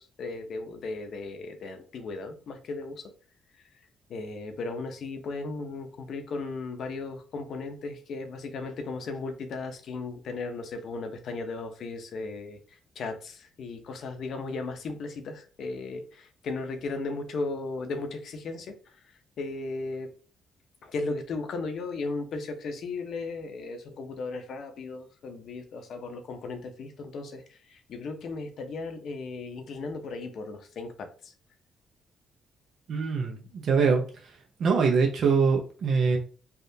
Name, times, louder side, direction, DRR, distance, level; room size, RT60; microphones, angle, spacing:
voice 1, 0.0-3.0 4.1-18.9 19.4-20.1 20.8-31.3, left 3 dB, 65° left, 6 dB, 0.6 m, -36 dB
voice 2, 32.9-34.0 34.6-36.2, right 5 dB, 60° right, 1 dB, 0.6 m, -23 dB
3.4 x 2.4 x 2.7 m, 0.39 s
cardioid pair, 90°, 0 cm